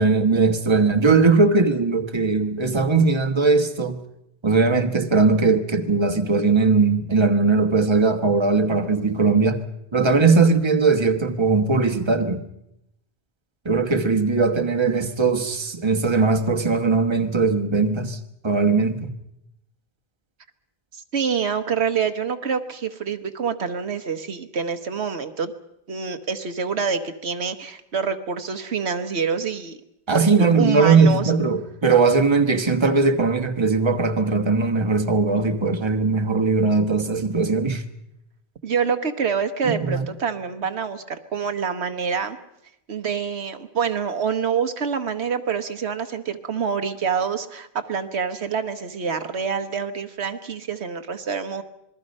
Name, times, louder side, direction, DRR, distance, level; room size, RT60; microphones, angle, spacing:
voice 1, 0.0-4.0 4.4-9.6 9.9-12.4 13.6-18.2 18.4-19.1 30.1-37.8 39.6-40.1, right 4 dB, 25° right, 1.3 m, -19 dB
voice 2, 20.9-25.5 25.9-29.8 30.1-31.3 38.6-42.4 42.9-51.6, right 6 dB, 80° right, 1.5 m, -26 dB
27.0 x 21.0 x 5.4 m
omnidirectional pair, 1.1 m